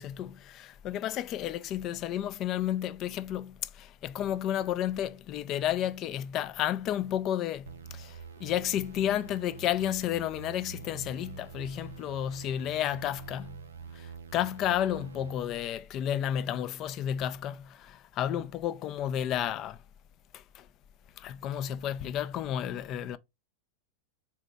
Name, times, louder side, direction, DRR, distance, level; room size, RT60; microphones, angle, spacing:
voice 1, 0.0-8.1 8.4-13.6 14.0-19.8 20.3-20.6 21.2-23.2, left 11 dB, 35° left, 0.3 m, -32 dB
sound 1, 7.7-15.3, right 6 dB, 70° right, 0.3 m, -46 dB
4.1 x 2.9 x 3.4 m
figure-of-eight pair, 90°, 0 cm